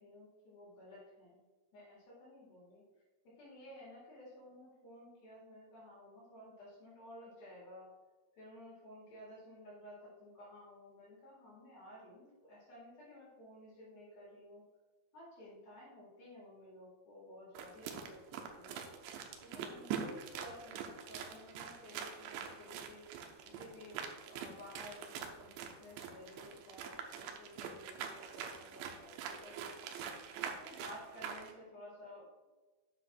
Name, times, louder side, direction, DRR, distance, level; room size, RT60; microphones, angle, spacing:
voice 1, 0.0-1.4 1.7-2.8 3.2-7.9 8.3-14.6 15.1-18.8 19.4-23.0 23.4-29.8 30.4-32.5, left 1 dB, 60° left, -7 dB, 3.9 m, -54 dB
sound 1, 17.6-31.5, right 7 dB, 80° right, 2.9 m, -44 dB
10.0 x 7.6 x 2.6 m, 1.2 s
omnidirectional pair, 5.2 m